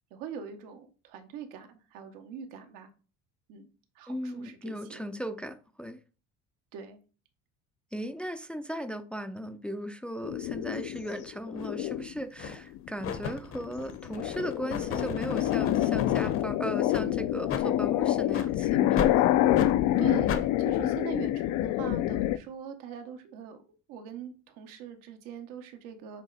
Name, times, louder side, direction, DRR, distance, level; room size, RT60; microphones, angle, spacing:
voice 1, 0.1-2.9 3.5-3.7 3.9-5.0 6.7-7.0 19.7-23.6 23.9-26.2, right 7 dB, 85° right, 1.2 m, -42 dB
voice 2, 4.1-6.0 7.9-19.3, equal, 5° left, 0.4 m, -37 dB
sound 1, 10.2-12.2 12.8-13.2 13.6-22.4, left 14 dB, 65° left, 0.5 m, -27 dB
sound 2, 11.6-11.7 12.4-12.7 13.0-16.4 16.9-17.1 17.5-17.7 18.3-18.5 19.0-19.2 19.5-19.7 20.3-20.5, left 6 dB, 40° left, 0.8 m, -35 dB
7.3 x 3.2 x 4.1 m
cardioid pair, 140°, 32 cm